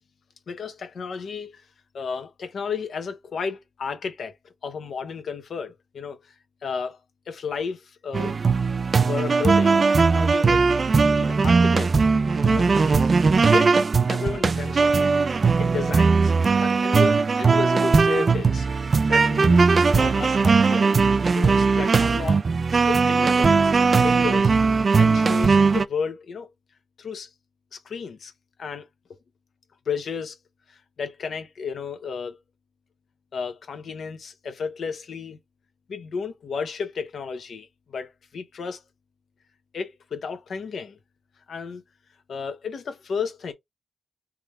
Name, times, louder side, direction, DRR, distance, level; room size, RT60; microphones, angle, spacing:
voice 1, 0.5-1.7 1.9-4.4 4.6-7.0 7.3-8.4 9.0-10.7 11.1-11.9 12.3-13.1 13.4-13.8 14.1-15.1 15.6-16.3 16.6-18.7 19.1-19.7 19.9-20.9 21.2-22.4 22.9-24.5 25.0-26.5 27.0-27.3 27.7-28.3 28.6-28.9 29.9-30.4 30.7-32.4 33.3-35.4 35.9-38.8 39.7-41.0 41.5-41.8 42.3-43.5, left 5 dB, 80° left, 1.0 m, -33 dB
sound 1, 8.1-25.8, right 4 dB, 55° right, 0.4 m, -19 dB
3.6 x 3.2 x 3.4 m
cardioid pair, 50°, 0 cm